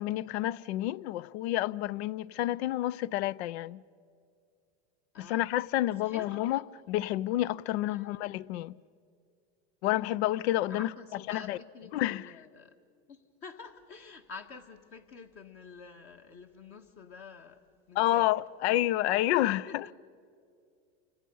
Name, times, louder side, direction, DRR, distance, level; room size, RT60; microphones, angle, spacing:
voice 1, 0.0-3.8 5.2-6.6 6.9-8.7 9.8-10.9 11.3-11.6 11.9-12.3 18.0-19.8, left 15 dB, 70° left, 0.6 m, -29 dB
voice 2, 5.1-6.6 7.9-8.1 10.7-12.7 13.1-17.6 17.9-18.3 19.4-19.9, left 5 dB, 40° left, 1.7 m, -49 dB
29.5 x 26.0 x 5.5 m
hypercardioid pair, 110°, 34 cm